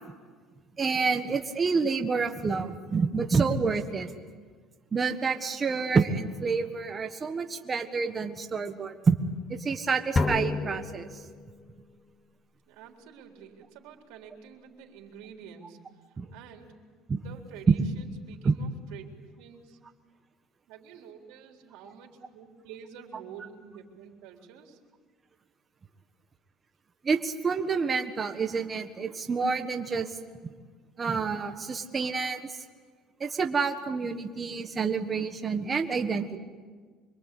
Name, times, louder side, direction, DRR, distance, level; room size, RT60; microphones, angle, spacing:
voice 1, 0.8-4.1 4.9-9.2 9.5-11.2 16.2-16.3 17.1-17.2 17.7-17.8 18.4-18.5 27.0-30.1 30.4-30.5 31.0-32.6 33.2-36.4, right 5 dB, 25° right, 6 dB, 1.5 m, -28 dB
sound 1, 10.2-11.8, left 3 dB, 20° left, 1.3 m, -30 dB
voice 2, 12.7-15.8 16.1-16.7 17.1-19.8 20.7-24.8, right 7 dB, 85° right, 1 dB, 3.8 m, -49 dB
25.5 x 23.0 x 8.6 m, 1.5 s
cardioid pair, 130°, 0 cm